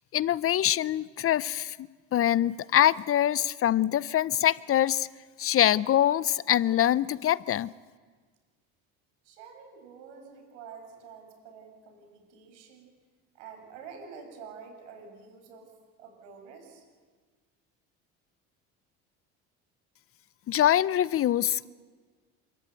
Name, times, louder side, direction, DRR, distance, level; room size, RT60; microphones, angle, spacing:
voice 1, 0.1-1.8 2.1-5.1 5.4-7.7 20.5-21.7, left 11 dB, 40° left, 19 dB, 0.6 m, -24 dB
voice 2, 9.2-12.9 13.3-15.7 16.0-16.8, right 6 dB, 85° right, 5 dB, 6.6 m, -48 dB
28.5 x 14.0 x 9.0 m, 1.5 s
supercardioid pair, 90°, 34 cm